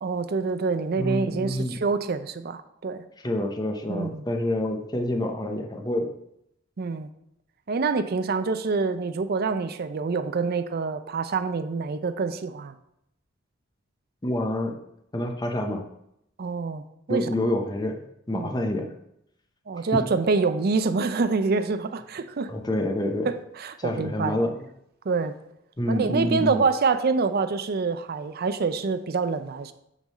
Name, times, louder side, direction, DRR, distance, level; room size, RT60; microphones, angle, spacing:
voice 1, 0.0-3.0 3.9-4.2 6.8-7.1 7.7-12.7 16.4-16.8 17.1-17.3 18.3-18.5 19.7-22.5 23.2-24.4 25.1-25.3 25.9-29.7, right 4 dB, 50° right, 11 dB, 0.5 m, -26 dB
voice 2, 1.0-1.8 3.2-6.1 14.2-14.8 15.1-15.8 17.1-18.0 18.3-18.9 19.9-20.0 22.5-23.3 23.8-24.7 25.8-26.6, left 1 dB, 20° left, 3 dB, 0.8 m, -27 dB
9.1 x 3.8 x 4.1 m, 0.78 s
head